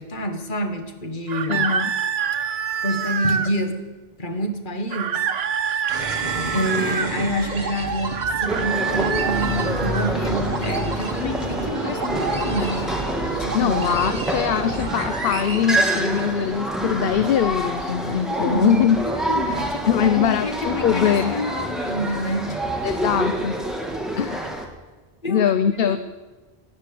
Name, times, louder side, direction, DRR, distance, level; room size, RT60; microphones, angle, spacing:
voice 1, 0.0-1.7 2.8-3.8 4.2-5.3 5.6-6.0 6.5-12.8 13.4-13.9 18.3-22.6 24.2-24.3 25.2-25.5 25.9-26.0, equal, 50° left, 5 dB, 1.6 m, -27 dB
sound 1, 1.3-3.5 4.9-7.1 8.1-10.1, right 7 dB, 70° right, 1.1 m, -26 dB
voice 2, 1.5-1.9 13.5-19.0 19.9-21.5 22.8-23.5 24.2-24.4 25.3-26.0, left 8 dB, 65° left, 11 dB, 0.8 m, -22 dB
sound 2, 5.9-16.5, right 3 dB, 45° right, 1.4 m, -30 dB
sound 3, 8.5-24.7, right 1 dB, ahead, 1.7 m, -27 dB
12.5 x 10.5 x 8.5 m, 1.2 s
omnidirectional pair, 1.1 m